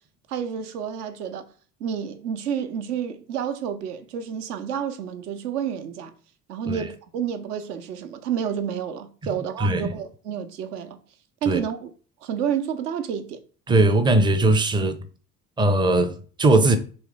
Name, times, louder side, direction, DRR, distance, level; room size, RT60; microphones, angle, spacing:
voice 1, 0.3-1.4 1.8-6.1 6.5-11.0 11.4-11.9 12.2-13.4, right 8 dB, 70° right, 0.8 m, -29 dB
voice 2, 9.6-9.9 11.5-11.6 13.7-15.0 15.6-16.8, right 2 dB, 10° right, 0.4 m, -19 dB
3.4 x 3.2 x 4.7 m
figure-of-eight pair, 60°, 49 cm